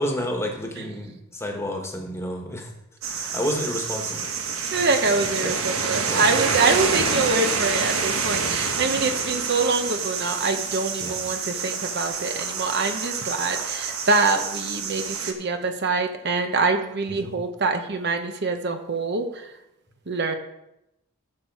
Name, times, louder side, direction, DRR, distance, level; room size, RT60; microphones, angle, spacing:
voice 1, 0.0-2.7 3.2-4.3 5.4-5.5 6.1-6.3 11.0-11.2 17.1-17.3, equal, 10° left, 2 dB, 1.4 m, -30 dB
sound 1, 3.0-15.3, right 5 dB, 80° right, 1.2 m, -27 dB
voice 2, 4.7-19.5 20.1-20.4, right 3 dB, 50° right, 7 dB, 0.8 m, -25 dB
13.0 x 6.5 x 4.7 m, 0.88 s
head